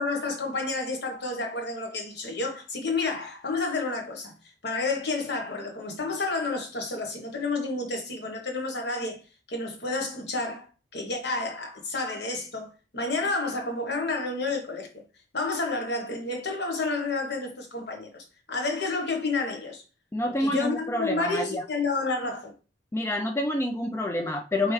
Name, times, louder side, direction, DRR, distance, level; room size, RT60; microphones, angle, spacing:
voice 1, 0.0-4.3 4.6-9.2 9.5-10.7 10.9-15.0 15.3-19.8 20.3-22.5, left 3 dB, 65° left, 1.2 m, -30 dB
voice 2, 20.1-21.6 22.9-24.7, left 1 dB, 15° left, 0.3 m, -28 dB
4.4 x 3.5 x 3.1 m
head